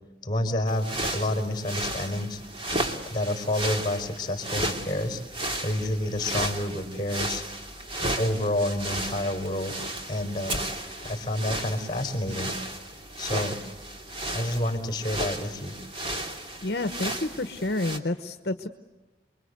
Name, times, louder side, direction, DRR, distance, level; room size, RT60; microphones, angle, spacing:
voice 1, 0.2-2.4 3.1-5.2 5.6-7.4 8.2-9.7 10.1-10.7 11.0-12.5 13.2-13.5 14.3-15.7, left 1 dB, 25° left, 6 dB, 4.5 m, -29 dB
sound 1, 0.7-18.0, right 1 dB, 30° right, 2.5 m, -34 dB
voice 2, 16.6-18.7, left 2 dB, 60° left, 9 dB, 1.0 m, -29 dB
29.0 x 22.5 x 8.1 m, 1.2 s
head